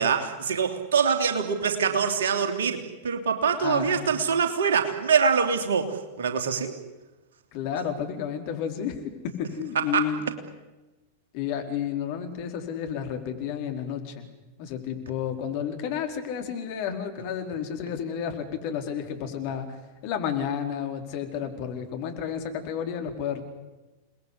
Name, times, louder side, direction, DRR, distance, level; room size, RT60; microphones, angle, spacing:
voice 1, 0.0-6.7 9.9-10.0, right 6 dB, 65° right, 6 dB, 3.1 m, -24 dB
voice 2, 3.6-4.1 7.5-10.2 11.3-14.2 14.6-23.4, left 8 dB, 45° left, 5 dB, 4.5 m, -31 dB
29.0 x 20.5 x 8.4 m, 1.1 s
figure-of-eight pair, 90°, 0 cm